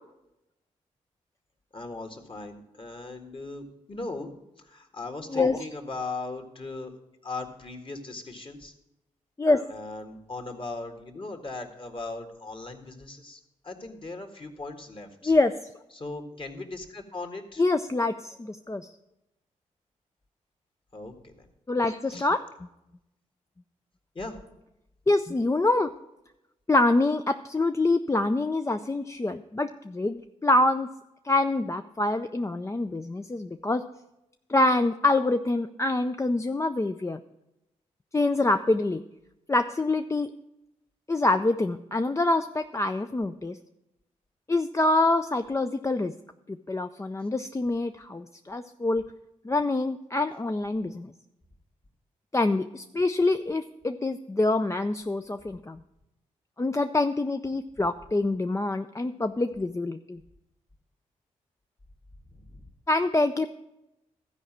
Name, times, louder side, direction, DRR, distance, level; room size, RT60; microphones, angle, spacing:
voice 1, 1.7-6.9 7.2-8.7 9.7-15.3 15.9-17.6 20.9-21.5 22.1-22.3 24.2-24.4 62.3-62.6, left 3 dB, 35° left, 5 dB, 1.8 m, -38 dB
voice 2, 17.6-18.9 21.7-22.4 25.1-25.9 26.7-30.9 31.2-33.8 34.5-37.2 38.1-39.0 39.5-40.3 41.1-43.6 44.5-46.1 46.5-49.0 49.4-51.1 52.3-55.8 56.6-60.2 62.9-63.5, left 2 dB, 20° left, 8 dB, 0.5 m, -25 dB
13.0 x 4.9 x 7.4 m, 0.91 s
supercardioid pair, 40°, 15 cm